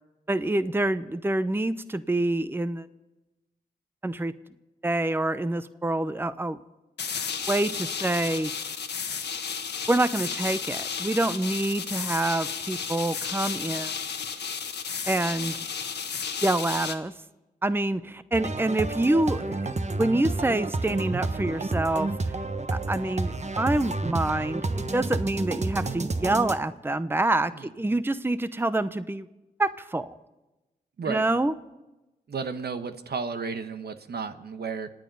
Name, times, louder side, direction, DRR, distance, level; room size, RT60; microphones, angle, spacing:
voice 1, 0.3-2.9 4.0-4.3 4.8-6.6 7.5-8.7 9.9-13.9 15.1-15.7 16.4-17.1 17.6-22.3 22.7-29.3 29.6-30.2 31.1-31.5, right 2 dB, 10° right, 14 dB, 0.8 m, -26 dB
sound 1, 7.0-16.9, left 6 dB, 75° left, 1.4 m, -33 dB
sound 2, 18.3-26.6, right 2 dB, 40° right, 1.2 m, -30 dB
voice 2, 32.3-34.9, right 5 dB, 65° right, 9 dB, 1.2 m, -33 dB
26.5 x 9.2 x 5.5 m, 1.0 s
supercardioid pair, 45°, 18 cm